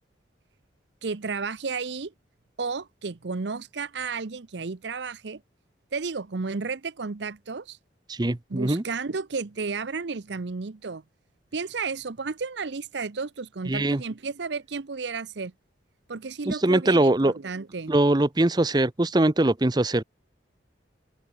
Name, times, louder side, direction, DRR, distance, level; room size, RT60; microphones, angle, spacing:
voice 1, 1.0-2.1 2.6-5.4 5.9-7.8 8.5-11.0 11.5-15.5 16.1-17.9, right 4 dB, 70° right, 0.7 m, -32 dB
voice 2, 8.1-8.8 13.7-14.0 16.5-17.3 17.9-20.0, right 1 dB, 20° right, 0.7 m, -22 dB
open air
head